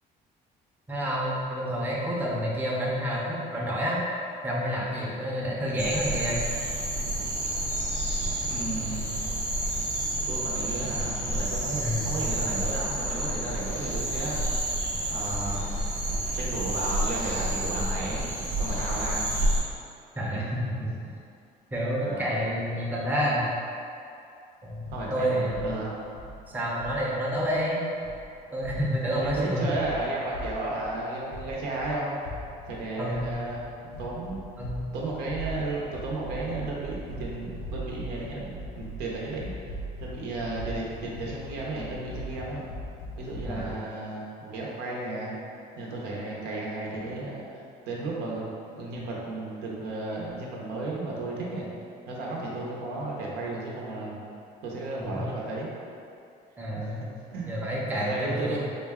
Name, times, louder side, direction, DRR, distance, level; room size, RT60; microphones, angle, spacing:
voice 1, 0.9-4.0 4.4-6.4 11.8-12.1 20.2-20.9 21.7-23.5 24.6-25.8 26.5-27.8 28.5-29.6 33.0-33.4 34.6-34.9 43.4-43.8 55.0-55.1 56.6-57.0 57.5-58.6, equal, 10° right, -5 dB, 0.6 m, -29 dB
sound 1, 5.8-19.6, right 1 dB, 45° right, 0.8 m, -29 dB
voice 2, 8.5-9.2 10.1-14.4 15.1-15.8 16.3-18.3 18.6-19.2 20.3-20.4 22.0-22.2 24.9-26.0 29.0-32.1 32.7-33.6 34.0-34.5 34.9-39.5 40.0-42.6 43.1-45.4 45.8-48.5 48.7-51.7 52.1-54.2 54.6-55.7 56.8-57.5 57.9-58.6, right 2 dB, 90° right, -4 dB, 0.8 m, -34 dB
sound 2, 24.6-43.8, equal, 85° left, 0.5 m, -41 dB
3.7 x 2.2 x 3.5 m, 2.5 s
cardioid pair, 125°, 17 cm